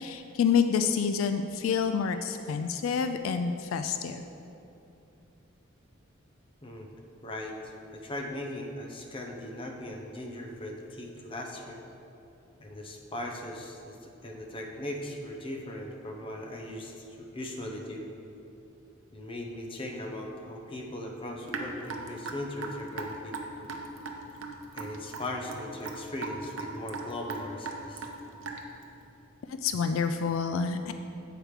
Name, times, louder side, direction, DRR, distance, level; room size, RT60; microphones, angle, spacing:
voice 1, 0.0-4.3 29.5-30.9, left 6 dB, 80° left, 8 dB, 0.3 m, -28 dB
voice 2, 7.2-11.8 12.6-18.0 19.1-23.4 24.7-28.1, left 1 dB, 25° left, 1 dB, 0.8 m, -39 dB
Raindrop / Drip, 21.5-28.8, right 4 dB, 70° right, 0.7 m, -38 dB
7.5 x 4.9 x 4.8 m, 2.8 s
head